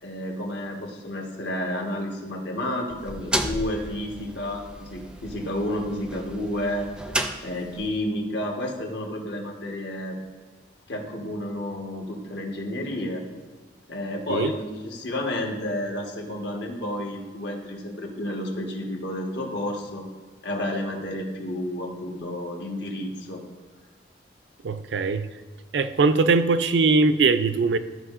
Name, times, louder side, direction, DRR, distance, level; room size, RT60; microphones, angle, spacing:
voice 1, 0.0-6.9 7.4-10.2 10.9-13.2 13.9-20.1 20.4-23.4, left 1 dB, 70° left, 1 dB, 1.3 m, -31 dB
sound 1, 2.9-8.0, right 1 dB, 5° right, 0.4 m, -33 dB
voice 2, 24.6-25.3 25.7-27.8, right 4 dB, 80° right, 12 dB, 0.4 m, -21 dB
12.5 x 5.4 x 2.5 m, 1.4 s
head